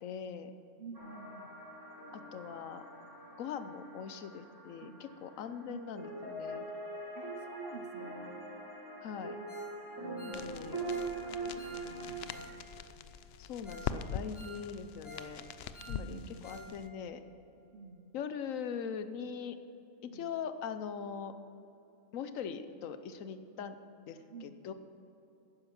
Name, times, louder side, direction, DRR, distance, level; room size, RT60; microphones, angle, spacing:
voice 1, 0.0-0.5 2.1-2.8 3.4-6.7 9.0-9.4 10.2-10.8 13.4-15.4 15.9-17.2 18.1-19.6 20.0-21.3 22.1-23.8 24.1-24.7, left 7 dB, 85° left, 10 dB, 1.1 m, -41 dB
voice 2, 0.8-1.6 4.8-5.0 5.7-6.0 7.1-8.4 10.4-10.6 11.3-12.6 15.8-16.5 17.7-18.1 20.1-20.3 24.3-24.6, right 4 dB, 55° right, 8 dB, 0.7 m, -50 dB
sound 1, 0.9-12.3, right 2 dB, 15° right, 1.6 m, -43 dB
Ringtone, 9.5-9.8 10.0-12.5 12.8-12.9 13.3-13.4 13.6-13.9 14.2-15.3 15.6-16.7 17.0-17.1 17.5-17.6, equal, 45° left, 3.6 m, -51 dB
sound 2, 10.3-16.9, left 7 dB, 65° left, 0.7 m, -43 dB
11.0 x 9.7 x 5.9 m, 2.9 s
omnidirectional pair, 1.3 m